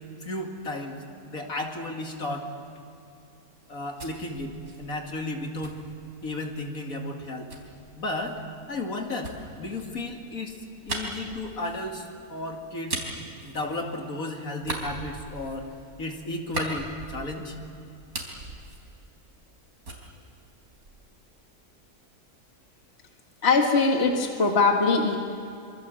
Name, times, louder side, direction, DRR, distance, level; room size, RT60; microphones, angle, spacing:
voice 1, 0.2-2.5 3.7-5.8 6.2-7.5 8.0-8.4 8.7-10.6 10.9-13.0 13.4-15.7 16.0-17.6, left 2 dB, 60° left, 2 dB, 2.8 m, -34 dB
sound 1, 3.6-6.6 7.5-14.2 14.6-17.6 17.9-19.6 19.8-21.2, right 2 dB, 70° right, 4.4 m, -39 dB
voice 2, 23.4-25.2, left 4 dB, 40° left, 2 dB, 2.1 m, -21 dB
26.0 x 24.5 x 7.6 m, 2.6 s
omnidirectional pair, 1.6 m